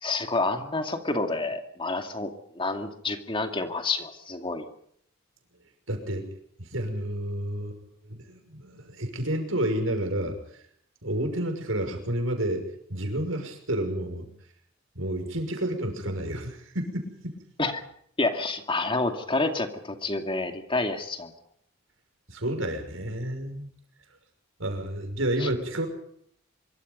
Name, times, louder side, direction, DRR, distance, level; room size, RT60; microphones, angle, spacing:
voice 1, 0.0-4.7 17.6-17.8 18.2-21.3 25.4-25.5, left 3 dB, 25° left, 5 dB, 2.3 m, -29 dB
voice 2, 5.9-6.3 6.7-10.4 11.0-12.6 12.9-14.2 14.9-17.4 22.3-23.7 24.6-25.9, right 1 dB, 80° right, 5 dB, 6.1 m, -30 dB
25.5 x 24.0 x 5.4 m, 0.67 s
head